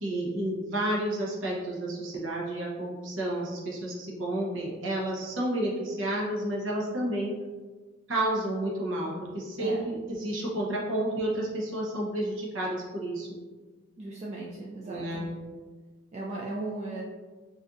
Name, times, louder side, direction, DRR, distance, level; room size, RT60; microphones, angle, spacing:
voice 1, 0.0-7.3 8.1-13.3 14.9-15.3, right 1 dB, 80° right, -4 dB, 0.8 m, -31 dB
voice 2, 14.0-15.3 16.1-17.0, right 2 dB, 35° right, -3 dB, 0.3 m, -37 dB
4.1 x 2.6 x 2.4 m, 1.4 s
head